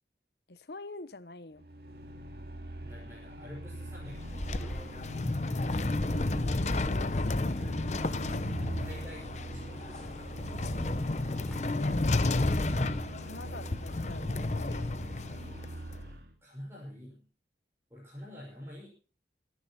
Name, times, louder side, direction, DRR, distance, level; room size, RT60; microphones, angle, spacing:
voice 1, 0.5-1.6 6.1-7.7 11.7-12.6 13.2-15.0, left 2 dB, 70° left, 14 dB, 1.1 m, -45 dB
sound 1, 1.6-16.3, right 1 dB, 60° right, 2.2 m, -42 dB
voice 2, 2.8-4.7 8.8-10.3 16.4-17.3 17.9-18.9, left 1 dB, 15° right, -5 dB, 6.4 m, -47 dB
sound 2, 4.1-16.0, left 2 dB, 40° left, 0.7 m, -32 dB
sound 3, 4.5-11.6, equal, 5° left, 3.2 m, -53 dB
25.5 x 10.5 x 4.4 m, 0.36 s
head